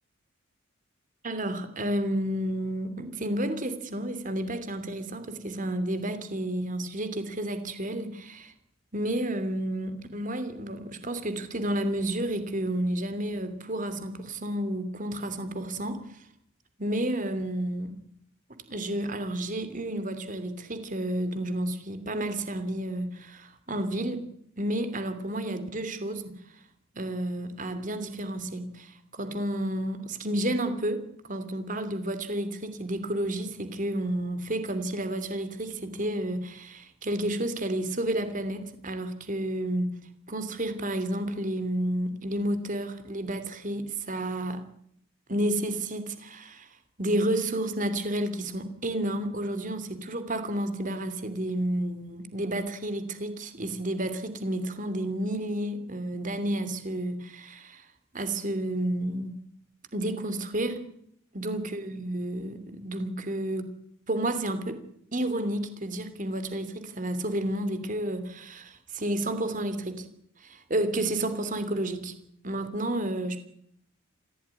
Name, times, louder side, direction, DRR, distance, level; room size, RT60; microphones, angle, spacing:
voice 1, 1.2-8.5 8.9-16.0 16.8-17.9 18.7-24.2 24.6-26.3 26.9-31.0 31.3-39.9 40.3-44.6 45.3-46.7 47.0-57.9 58.1-59.3 59.9-60.8 61.3-63.7 64.1-64.8 65.1-70.0 70.4-72.1 72.4-73.4, right 1 dB, 35° right, 10 dB, 2.9 m, -31 dB
25.0 x 16.0 x 9.9 m, 0.73 s
head